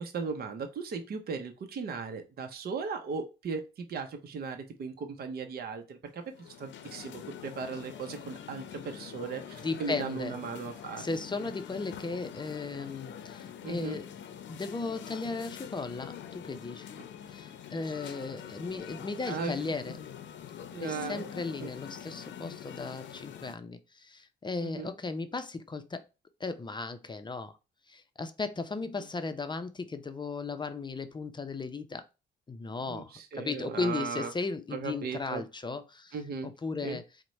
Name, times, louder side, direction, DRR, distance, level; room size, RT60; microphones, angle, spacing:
voice 1, 0.0-11.0 13.6-14.0 19.3-19.6 20.7-21.2 21.6-21.7 24.6-24.9 32.9-34.3 34.7-35.4 36.1-36.5 36.8-37.0, right 5 dB, 50° right, 0.7 m, -37 dB
sound 1, 6.2-23.5, left 9 dB, 65° left, 0.6 m, -45 dB
voice 2, 9.6-10.4 11.0-14.1 14.5-16.9 17.3-20.0 20.8-26.0 26.4-27.6 27.9-32.0 32.5-36.2 36.4-37.0, left 3 dB, 25° left, 0.5 m, -36 dB
4.4 x 2.1 x 4.0 m
cardioid pair, 90°, 20 cm